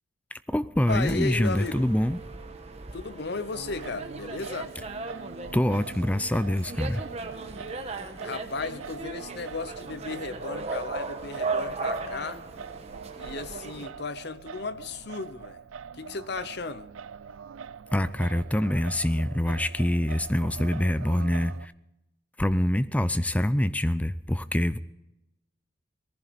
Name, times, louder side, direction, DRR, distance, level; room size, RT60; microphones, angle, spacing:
voice 1, 0.3-2.2 5.5-7.0 17.9-21.7 22.4-24.8, left 1 dB, 5° left, 0.4 m, -25 dB
voice 2, 0.9-1.9 2.9-4.7 8.2-12.4 13.2-15.6 15.9-16.9, left 4 dB, 55° left, 0.7 m, -35 dB
sound 1, 0.9-13.9, right 3 dB, 30° right, 1.2 m, -37 dB
Singing, 3.5-21.7, right 6 dB, 90° right, 0.5 m, -43 dB
18.5 x 15.0 x 4.1 m
head